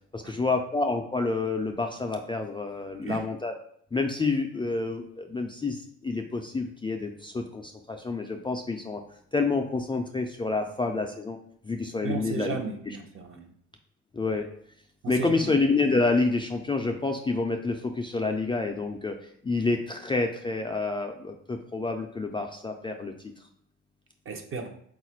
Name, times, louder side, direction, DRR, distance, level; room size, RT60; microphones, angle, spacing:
voice 1, 0.1-3.5 3.9-9.0 9.3-11.4 11.6-12.6 12.9-13.0 14.1-14.5 15.1-19.2 19.4-23.1, left 3 dB, 15° left, 0.3 m, -28 dB
voice 2, 12.0-13.5 15.0-15.5 24.3-24.7, right 4 dB, 45° right, 0.7 m, -35 dB
4.1 x 2.4 x 4.3 m
cardioid pair, 90°, 30 cm